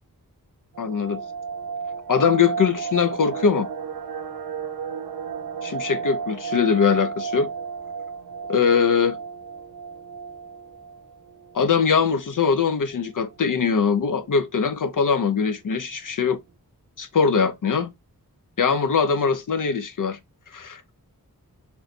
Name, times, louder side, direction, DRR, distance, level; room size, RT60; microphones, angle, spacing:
sound 1, 0.7-11.5 11.8-11.9 12.3-12.5 12.9-13.4 13.9-14.0 14.1-14.7 15.0-15.1, right 6 dB, 75° right, 0.5 m, -33 dB
voice 1, 0.8-1.2 2.1-3.7 5.6-7.5 8.5-9.2 11.5-16.4 17.0-17.9 18.6-20.2 20.5-20.8, left 6 dB, 60° left, 0.5 m, -21 dB
3.1 x 2.9 x 2.4 m
wide cardioid pair, 50°, 37 cm